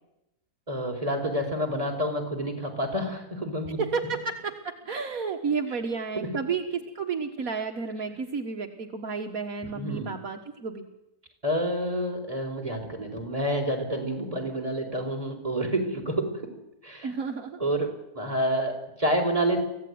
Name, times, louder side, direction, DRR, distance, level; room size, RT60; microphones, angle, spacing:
voice 1, 0.7-3.8 6.1-6.3 9.6-10.1 11.4-16.5 16.8-17.1 17.6-19.7, right 1 dB, 25° right, 1 dB, 4.6 m, -28 dB
voice 2, 3.8-6.6 7.0-10.9 17.0-17.6, right 5 dB, 65° right, 4 dB, 1.9 m, -31 dB
25.0 x 16.0 x 9.5 m, 0.92 s
omnidirectional pair, 1.6 m